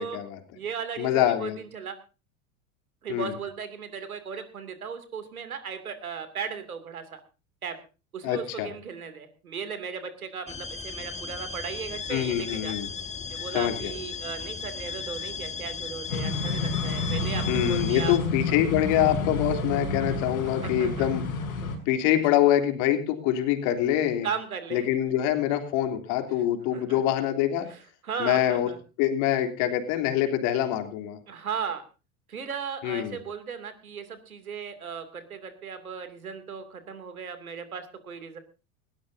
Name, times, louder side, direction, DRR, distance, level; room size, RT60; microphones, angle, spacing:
voice 1, 0.0-0.4 1.0-1.6 3.1-3.3 8.2-8.7 12.1-12.9 13.5-13.7 17.5-21.2 21.9-24.3 24.7-27.7 28.2-28.7 29.0-31.2 32.8-33.2, left 12 dB, 60° left, 5 dB, 3.4 m, -25 dB
voice 2, 0.5-2.0 3.0-7.2 7.6-7.8 8.1-12.7 13.3-18.2 20.6-21.1 24.2-25.0 26.7-27.0 27.6-28.8 31.3-31.8 32.3-38.4, right 6 dB, 85° right, 10 dB, 2.8 m, -36 dB
sound 1, 10.5-18.2, left 5 dB, 15° left, 1.7 m, -36 dB
sound 2, 16.1-21.8, left 3 dB, 80° left, 5.7 m, -29 dB
19.5 x 17.5 x 2.7 m, 0.32 s
hypercardioid pair, 80°, 42 cm